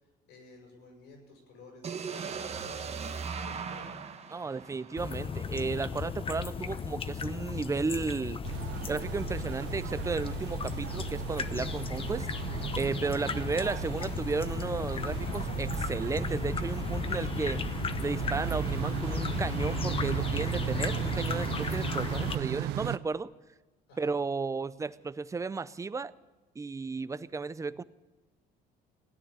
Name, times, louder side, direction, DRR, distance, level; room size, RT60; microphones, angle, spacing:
voice 1, 0.3-4.1 23.9-24.1, left 3 dB, 90° left, 1 dB, 7.2 m, -52 dB
sound 1, 1.8-5.7, right 6 dB, 40° right, 1.2 m, -39 dB
voice 2, 4.3-8.4 8.9-12.3 12.8-17.6 18.0-23.3 24.0-26.1 26.6-27.8, right 4 dB, 20° right, 16 dB, 0.5 m, -34 dB
sound 2, 5.0-22.4, left 6 dB, 30° left, 0.8 m, -35 dB
sound 3, 8.4-23.0, right 13 dB, 85° right, 0.6 m, -36 dB
17.0 x 10.0 x 8.2 m, 1.2 s
cardioid pair, 110°, 17 cm